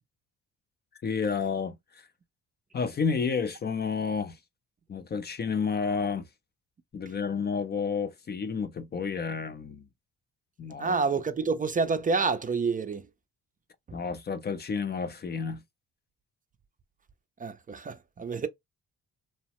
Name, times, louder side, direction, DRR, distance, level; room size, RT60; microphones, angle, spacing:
voice 1, 1.0-2.1 2.7-4.4 4.9-6.3 6.9-9.8 10.6-11.0 13.9-15.6, left 5 dB, 35° left, 0.5 m, -30 dB
voice 2, 10.8-13.1 13.9-14.0 17.4-18.5, right 4 dB, 25° right, 0.5 m, -28 dB
2.9 x 2.0 x 2.9 m
cardioid pair, 90°, 30 cm